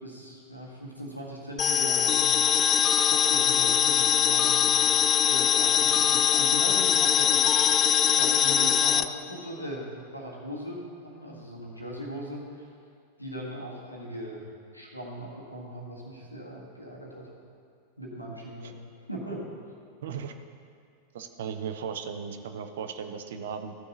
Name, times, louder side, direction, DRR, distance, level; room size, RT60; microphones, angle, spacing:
voice 1, 0.0-2.2 2.9-4.7 5.2-7.5 8.1-9.9 10.1-12.7 13.2-14.4 14.7-17.3 18.0-18.8 19.1-19.5, right 1 dB, 85° left, -3 dB, 1.6 m, -39 dB
sound 1, 1.6-9.0, left 9 dB, 30° left, 0.3 m, -22 dB
voice 2, 20.0-20.3 21.1-23.7, right 7 dB, 60° right, 8 dB, 0.6 m, -36 dB
14.0 x 6.6 x 4.0 m, 2.2 s
figure-of-eight pair, 90°, 0 cm